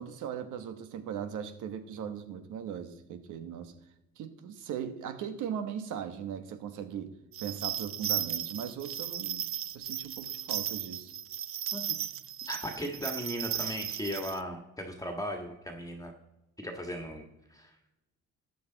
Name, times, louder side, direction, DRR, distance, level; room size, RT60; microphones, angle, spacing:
voice 1, 0.0-3.7 4.2-9.5 9.7-11.1, right 8 dB, 85° right, 9 dB, 1.4 m, -39 dB
sound 1, 7.3-14.4, right 10 dB, 45° right, 0.5 m, -35 dB
voice 2, 12.5-16.1 16.6-17.7, equal, 10° left, 3 dB, 1.6 m, -37 dB
13.5 x 9.3 x 4.0 m, 0.94 s
cardioid pair, 90°, 30 cm